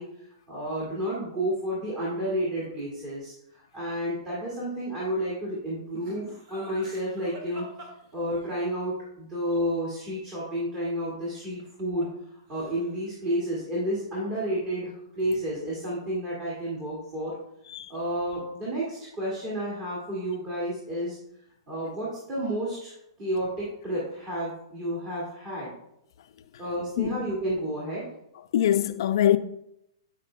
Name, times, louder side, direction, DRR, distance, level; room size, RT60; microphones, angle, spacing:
voice 1, 0.0-7.7 8.1-12.1 12.5-17.3 17.9-21.2 21.7-25.7 26.6-28.1, equal, 30° right, 2.0 m, -31 dB
Laughter, 5.9-8.6 11.4-12.2 12.5-13.1, right 2 dB, 50° right, 1.6 m, -46 dB
voice 2, 28.5-29.4, left 11 dB, 65° left, 0.4 m, -23 dB
9.7 x 4.9 x 2.2 m
hypercardioid pair, 135°, 3 cm